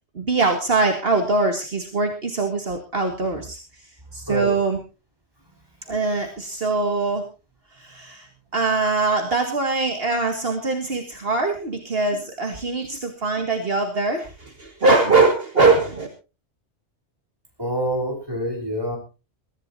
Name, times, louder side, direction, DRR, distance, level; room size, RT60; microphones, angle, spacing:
voice 1, 0.2-3.6 4.1-4.8 5.9-7.2 7.8-8.3 8.5-16.1, right 3 dB, 60° right, 4 dB, 2.2 m, -22 dB
voice 2, 4.3-4.6 12.7-12.9 17.6-19.0, equal, 20° right, 1 dB, 5.7 m, -27 dB
23.5 x 14.5 x 2.7 m, 0.32 s
omnidirectional pair, 1.2 m